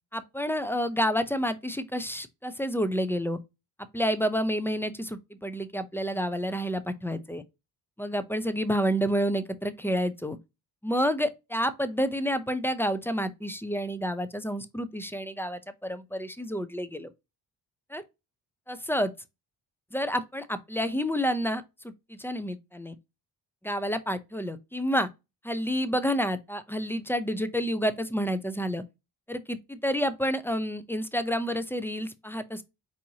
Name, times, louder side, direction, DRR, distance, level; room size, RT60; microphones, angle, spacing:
voice 1, 0.1-3.4 3.9-7.4 8.0-10.4 10.8-17.1 17.9-18.0 18.7-19.1 19.9-21.6 22.1-23.0 23.6-25.1 25.4-28.8 29.3-32.6, equal, 5° left, 0.5 m, -29 dB
4.6 x 2.7 x 2.7 m
cardioid pair, 65°, 44 cm